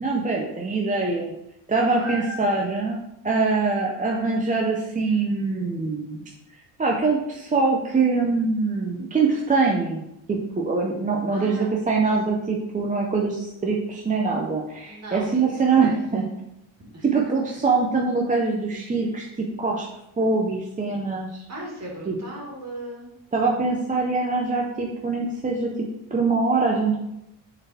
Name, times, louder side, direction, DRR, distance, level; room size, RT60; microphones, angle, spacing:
voice 1, 0.0-1.3 1.7-3.0 3.2-6.2 6.8-10.0 10.3-16.2 17.0-19.9 20.2-21.4 22.1-22.2 23.3-25.7 26.1-27.1, right 4 dB, 15° right, -1 dB, 0.5 m, -23 dB
voice 2, 1.9-2.4 11.3-11.7 14.8-16.0 16.9-17.1 21.5-23.1, right 1 dB, 35° right, -2 dB, 2.2 m, -37 dB
6.7 x 4.1 x 4.2 m, 0.82 s
cardioid pair, 150°, 48 cm